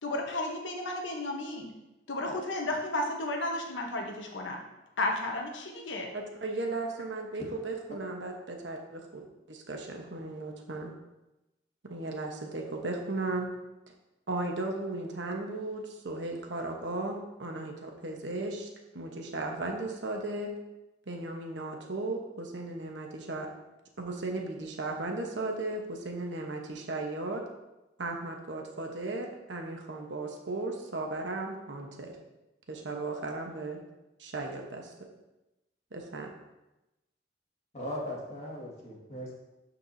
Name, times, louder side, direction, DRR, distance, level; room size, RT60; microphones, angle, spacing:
voice 1, 0.0-1.7 2.1-4.6 5.0-6.1, left 2 dB, 90° left, 1 dB, 1.0 m, -33 dB
voice 2, 6.1-10.9 11.8-13.5 13.9-14.0 14.3-18.7 18.9-20.5 21.1-23.5 24.0-27.4 28.0-32.2 32.7-33.8 34.2-34.9 35.9-36.3, right 2 dB, 75° right, 2 dB, 1.0 m, -36 dB
voice 3, 37.7-39.4, left 1 dB, 40° left, -3 dB, 1.9 m, -38 dB
12.0 x 4.6 x 2.7 m, 0.98 s
head